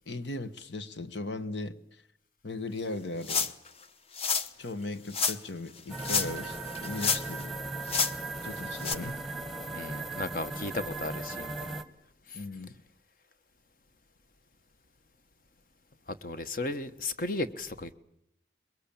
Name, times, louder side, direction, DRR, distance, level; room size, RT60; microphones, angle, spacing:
voice 1, 0.1-2.0 2.4-3.5 4.6-7.6 8.4-9.2 10.7-10.8 12.3-12.7, left 2 dB, 85° left, 11 dB, 1.3 m, -38 dB
sound 1, 3.2-3.7 4.1-4.5 5.1-5.4 6.0-6.5 6.8-7.4 7.9-8.1 8.8-9.0, left 5 dB, 35° left, 1.0 m, -28 dB
sound 2, 5.9-11.8, right 2 dB, ahead, 1.2 m, -37 dB
voice 2, 9.7-11.8 12.3-12.4 16.2-17.9, left 2 dB, 50° left, 11 dB, 1.3 m, -35 dB
24.0 x 22.0 x 8.8 m, 0.76 s
head